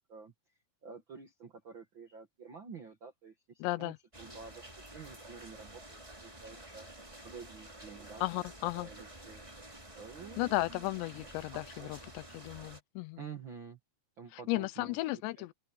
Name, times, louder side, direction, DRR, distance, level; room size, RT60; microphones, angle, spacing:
voice 1, 0.8-6.9 7.2-8.4 8.7-9.4 9.9-10.9 11.5-11.9 13.2-13.8 14.2-15.0 15.4-15.5, right 5 dB, 85° right, 1.0 m, -49 dB
voice 2, 3.6-4.0 8.2-8.9 10.4-13.2 14.3-15.5, left 20 dB, 90° left, 2.9 m, -35 dB
sound 1, 4.1-12.8, right 1 dB, 10° right, 2.7 m, -50 dB
open air
omnidirectional pair, 4.9 m